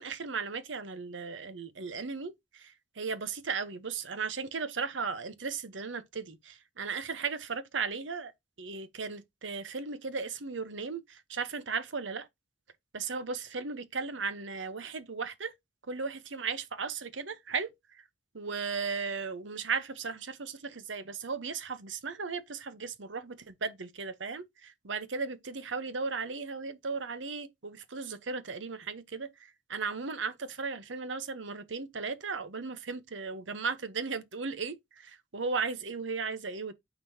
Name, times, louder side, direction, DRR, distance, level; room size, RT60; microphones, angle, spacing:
voice 1, 0.0-8.3 8.6-12.3 12.9-15.5 15.9-18.0 18.3-36.7, right 5 dB, 75° right, 0.9 m, -36 dB
9.3 x 5.1 x 2.8 m
head